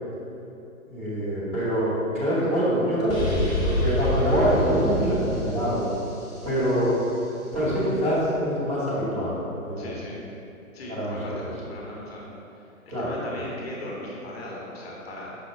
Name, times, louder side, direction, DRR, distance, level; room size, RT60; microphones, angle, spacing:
voice 1, 0.9-5.8 6.4-6.9 7.5-9.4 9.6-9.9 10.9-11.3 12.9-13.4, equal, 10° right, -13 dB, 0.8 m, -25 dB
sound 1, 3.1-6.9, left 1 dB, 15° left, 1.0 m, -28 dB
voice 2, 9.8-10.2 10.7-12.3 13.0-15.4, left 1 dB, 45° left, -4 dB, 0.8 m, -38 dB
5.4 x 2.1 x 4.3 m, 2.8 s
hypercardioid pair, 145°, 42 cm